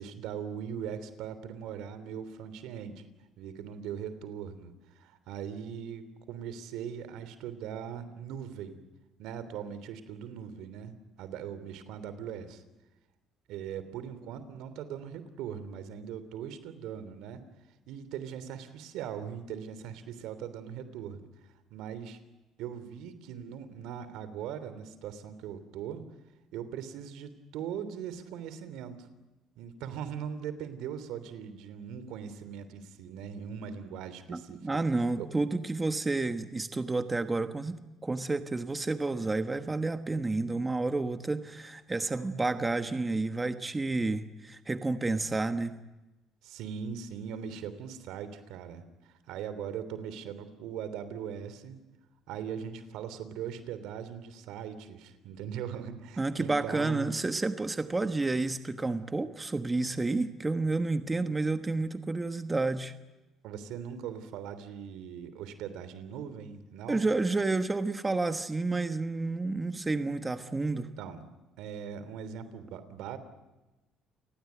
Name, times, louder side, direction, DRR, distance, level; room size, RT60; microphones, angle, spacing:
voice 1, 0.0-3.0 3.4-8.8 9.2-12.6 13.5-17.4 17.9-22.2 22.6-26.1 26.5-29.1 29.6-34.8 35.2-35.3 46.4-51.8 52.3-57.1 63.4-67.1 70.7-71.3 71.6-73.2, right 8 dB, 80° right, 13 dB, 3.1 m, -40 dB
voice 2, 34.3-45.7 56.2-62.9 66.9-70.9, right 3 dB, 15° right, 9 dB, 1.2 m, -30 dB
29.5 x 19.5 x 9.4 m, 1.0 s
cardioid pair, 110°, 0 cm